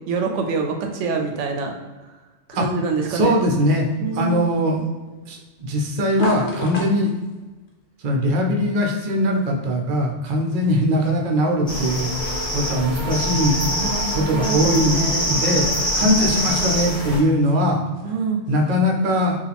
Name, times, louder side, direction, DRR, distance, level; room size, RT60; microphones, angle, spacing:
voice 1, 0.1-1.8 2.5-3.4 4.0-4.4 13.7-15.4 18.0-18.4, right 4 dB, 75° right, 3 dB, 0.9 m, -26 dB
sound 1, 2.5-19.0, left 1 dB, 60° left, 1.1 m, -39 dB
voice 2, 3.1-3.9 4.1-4.8 5.3-7.1 8.0-12.1 12.5-13.6 14.1-15.7 16.0-17.8 18.5-19.4, equal, 45° right, 0 dB, 0.6 m, -20 dB
sound 2, 11.7-17.2, equal, 5° left, 1.1 m, -24 dB
4.7 x 2.5 x 3.4 m, 1.2 s
omnidirectional pair, 1.3 m